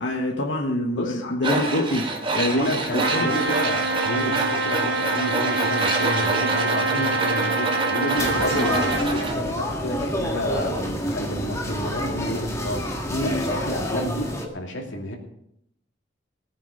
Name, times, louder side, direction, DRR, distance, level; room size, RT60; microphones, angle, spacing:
voice 1, 0.0-3.3 6.9-7.1 13.1-13.5, left 1 dB, 65° left, 0 dB, 1.5 m, -26 dB
voice 2, 0.9-1.6 2.4-15.2, equal, 90° left, 2 dB, 2.6 m, -30 dB
Tools, 1.4-9.4, right 3 dB, 30° right, 1.9 m, -27 dB
Trumpet, 3.0-9.1, right 3 dB, 75° right, 2.1 m, -26 dB
sound 1, 8.1-14.5, equal, 15° left, 2.0 m, -28 dB
18.0 x 9.8 x 5.2 m, 0.78 s
head